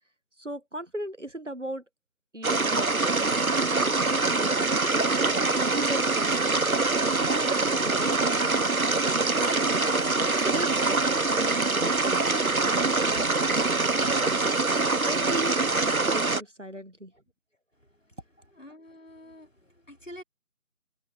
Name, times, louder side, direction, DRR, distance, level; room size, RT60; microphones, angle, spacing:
voice 1, 0.4-1.8 2.3-5.1 5.6-6.7 7.0-10.0 10.4-12.2 12.8-14.3 14.9-17.1, right 1 dB, 55° right, 1.4 m, -38 dB
sound 1, 2.4-16.4, right 3 dB, 70° right, 1.2 m, -24 dB
voice 2, 18.6-20.2, left 1 dB, 55° left, 4.4 m, -47 dB
figure-of-eight pair, 180°, 45 cm